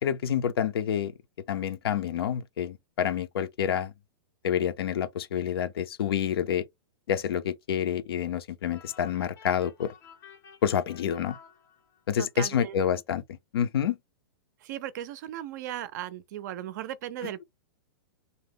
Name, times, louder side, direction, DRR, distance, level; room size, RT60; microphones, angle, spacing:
voice 1, 0.0-1.1 1.5-3.9 4.4-6.6 7.1-9.9 10.6-11.4 12.1-13.2 13.5-14.0, left 9 dB, 80° left, 0.6 m, -28 dB
sound 1, 8.7-12.2, left 6 dB, 25° left, 0.6 m, -52 dB
voice 2, 12.2-12.8 14.6-17.4, right 12 dB, 50° right, 0.4 m, -37 dB
2.7 x 2.0 x 3.3 m
hypercardioid pair, 155°, 13 cm